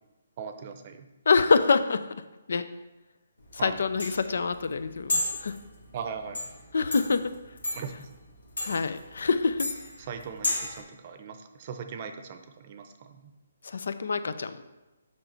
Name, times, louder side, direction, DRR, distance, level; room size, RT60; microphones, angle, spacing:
voice 1, 0.4-1.0 3.6-3.8 5.9-6.4 7.7-8.0 10.1-12.9, right 6 dB, 40° right, 7 dB, 0.7 m, -39 dB
voice 2, 1.3-2.1 2.5-2.7 3.5-5.6 6.7-7.3 8.6-9.7 13.6-14.6, left 4 dB, 70° left, 12 dB, 0.5 m, -25 dB
sound 1, 3.4-10.8, left 2 dB, 85° left, 1.6 m, -34 dB
6.5 x 5.6 x 4.3 m, 1.1 s
figure-of-eight pair, 145°, 0 cm